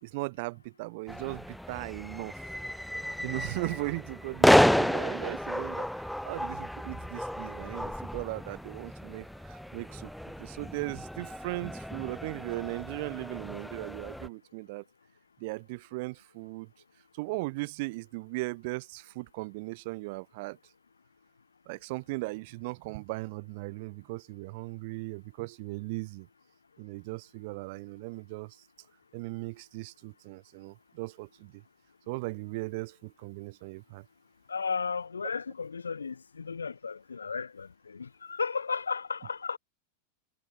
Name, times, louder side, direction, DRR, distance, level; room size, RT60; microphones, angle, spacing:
voice 1, 0.0-2.5 3.2-10.1 10.4-14.8 15.4-16.7 17.1-20.6 21.7-26.3 26.8-28.6 29.1-31.6 32.1-34.0, right 25 dB, 50° right, 6.2 m, -38 dB
sound 1, 1.1-14.3, equal, ahead, 1.3 m, -31 dB
voice 2, 34.5-39.6, left 5 dB, 75° left, 4.4 m, -34 dB
figure-of-eight pair, 90°, 0 cm